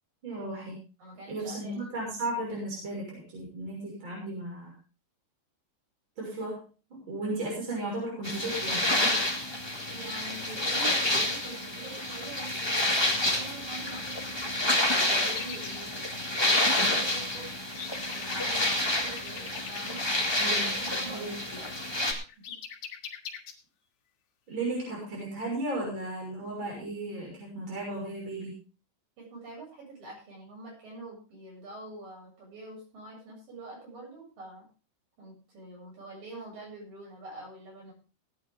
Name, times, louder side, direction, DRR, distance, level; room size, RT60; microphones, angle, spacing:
voice 1, 0.2-0.8 1.3-4.7 6.2-6.6 6.9-9.4 20.4-20.8 21.1-21.4 24.5-28.6, right 2 dB, 25° right, -3 dB, 6.8 m, -35 dB
voice 2, 1.0-1.9 9.9-17.5 18.1-20.0 20.6-21.7 22.0-22.2 29.2-34.7 35.2-37.9, right 2 dB, 55° right, -3 dB, 9.3 m, -45 dB
sound 1, 8.2-22.1, left 1 dB, 20° left, 0.7 m, -29 dB
sound 2, 14.1-14.2 14.3-15.8 16.4-17.0 17.3-20.2 21.6-21.7 22.0-23.5 24.9-25.0 25.2-25.4, left 8 dB, 75° left, 3.7 m, -43 dB
18.0 x 10.0 x 3.6 m, 0.34 s
omnidirectional pair, 4.7 m